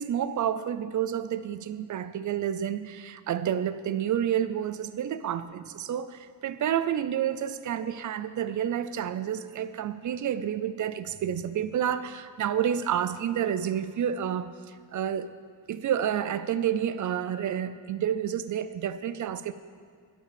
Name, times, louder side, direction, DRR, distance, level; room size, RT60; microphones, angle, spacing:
voice 1, 0.0-14.5 14.9-15.3 15.7-19.5, right 9 dB, 45° right, 0.5 m, -29 dB
12.0 x 7.3 x 6.9 m
cardioid pair, 160°, 45 cm